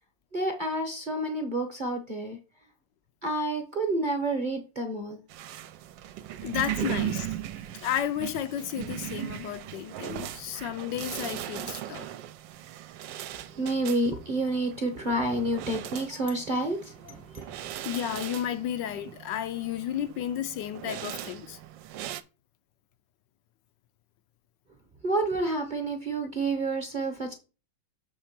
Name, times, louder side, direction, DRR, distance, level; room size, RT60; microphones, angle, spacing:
voice 1, 0.3-2.4 3.2-5.2 6.8-6.9 13.5-17.6 25.0-27.3, right 2 dB, 35° right, 0.9 m, -29 dB
sound 1, 5.3-22.2, right 12 dB, 75° right, 1.3 m, -38 dB
voice 2, 6.4-7.3 7.7-12.1 17.8-21.6, left 10 dB, 75° left, 1.3 m, -32 dB
7.0 x 3.6 x 5.8 m
omnidirectional pair, 2.1 m